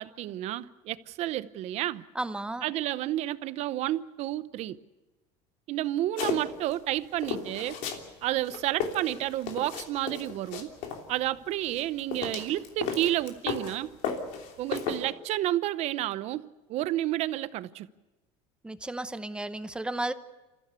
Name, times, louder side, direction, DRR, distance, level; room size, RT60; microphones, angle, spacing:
voice 1, 0.0-2.0 2.6-4.8 5.7-7.8 8.2-10.7 11.1-13.9 14.6-17.9, right 14 dB, 50° right, 0.8 m, -30 dB
voice 2, 2.1-2.6 18.6-20.1, right 2 dB, 5° right, 0.8 m, -33 dB
sound 1, 6.2-6.8 7.2-8.1 8.4-11.0 11.6-13.8 14.0-15.0, left 7 dB, 65° left, 3.2 m, -34 dB
28.0 x 15.0 x 8.3 m
cardioid pair, 145°, 14 cm